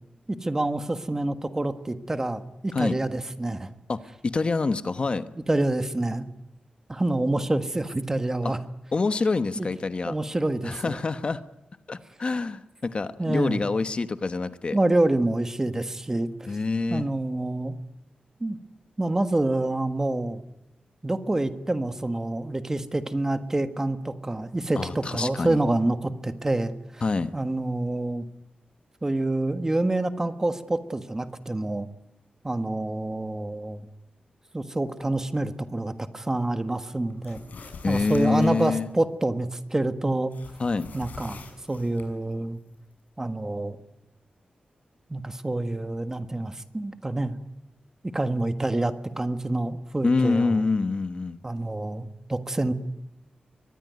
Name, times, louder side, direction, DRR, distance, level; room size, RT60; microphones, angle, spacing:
voice 1, 0.3-3.7 5.5-6.3 6.9-8.6 9.6-9.7 10.0-11.0 13.2-13.6 14.7-16.3 16.9-17.7 18.4-18.6 19.0-20.4 21.0-27.0 27.3-28.3 29.0-31.9 32.4-33.9 34.5-37.4 37.9-40.3 40.9-42.6 43.2-43.8 45.1-47.4 48.1-50.6 51.4-52.7, right 2 dB, 20° right, 9 dB, 1.5 m, -27 dB
voice 2, 3.9-5.2 8.4-8.5 8.9-10.1 10.6-11.4 11.9-14.8 16.5-17.1 24.8-25.6 27.0-27.3 37.8-38.9 40.6-40.9 50.0-51.4, left 3 dB, 40° left, 11 dB, 1.1 m, -26 dB
sound 1, 37.1-38.8 40.3-42.1, left 4 dB, 75° left, 6.2 m, -44 dB
23.5 x 20.5 x 9.4 m, 0.91 s
wide cardioid pair, 150°, 3 cm